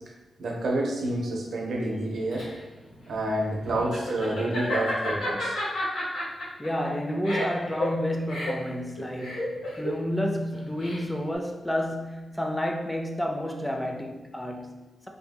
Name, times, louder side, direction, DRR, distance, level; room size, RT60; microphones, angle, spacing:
voice 1, 0.4-2.4 3.1-5.5, right 1 dB, 75° right, -1 dB, 0.6 m, -28 dB
Laughter, 1.9-11.3, left 1 dB, 85° left, 0.9 m, -32 dB
voice 2, 6.6-15.1, equal, 10° left, 2 dB, 0.5 m, -30 dB
2.7 x 2.7 x 2.2 m, 1.1 s
supercardioid pair, 45°, 0 cm